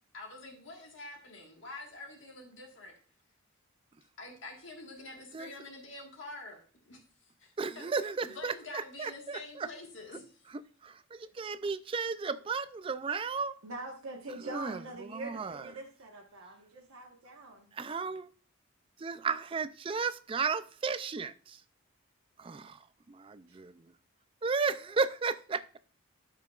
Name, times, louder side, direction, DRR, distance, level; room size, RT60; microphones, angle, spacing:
voice 1, 0.1-2.9 4.2-6.6 6.9-7.0 7.4-7.9 8.2-10.4, left 2 dB, 60° left, 1.6 m, -46 dB
voice 2, 7.6-8.5 9.0-9.7 10.5-13.5 14.5-15.7 17.7-18.3 19.0-21.6 22.4-22.8 23.1-23.8 24.4-25.8, right 5 dB, 25° right, 0.3 m, -34 dB
voice 3, 13.6-17.7 23.5-23.6, right 2 dB, 90° right, 1.2 m, -44 dB
12.5 x 5.7 x 2.4 m
head